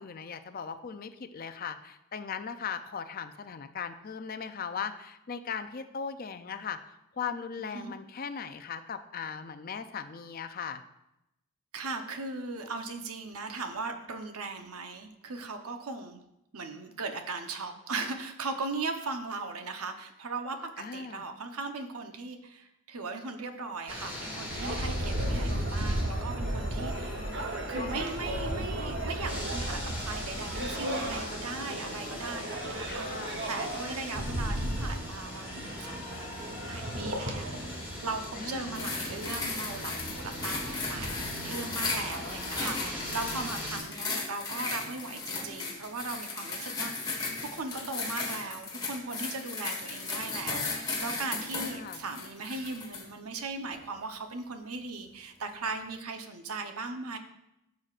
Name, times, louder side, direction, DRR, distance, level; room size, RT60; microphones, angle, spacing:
voice 1, 0.0-10.8 20.8-21.2 32.9-33.4 38.4-38.8 51.6-52.0, left 6 dB, 40° left, 10 dB, 0.4 m, -38 dB
voice 2, 7.5-7.9 11.7-16.2 16.5-27.3 27.7-36.4 36.7-57.2, right 3 dB, 80° right, 6 dB, 0.9 m, -38 dB
sound 1, 23.9-43.8, left 1 dB, 10° right, 2.3 m, -41 dB
sound 2, 24.5-41.9, right 1 dB, 55° right, 0.9 m, -35 dB
sound 3, 38.7-53.1 53.7-53.9, left 3 dB, 20° left, 1.4 m, -36 dB
13.5 x 6.3 x 2.5 m, 0.86 s
head